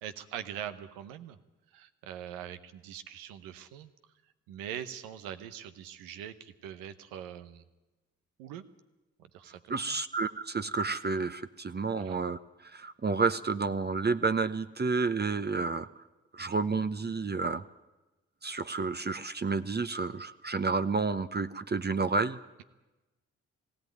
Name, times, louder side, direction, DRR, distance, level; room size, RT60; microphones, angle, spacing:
voice 1, 0.0-1.4 1.7-3.9 4.5-7.6 8.4-8.6 9.3-9.6 9.9-10.0 12.0-12.2, right 10 dB, 90° right, 10 dB, 1.0 m, -42 dB
voice 2, 9.7-12.4 12.7-15.9 16.3-17.6 18.4-22.4, right 4 dB, 30° right, 10 dB, 0.9 m, -30 dB
19.5 x 16.0 x 9.3 m, 1.1 s
hypercardioid pair, 40°, 33 cm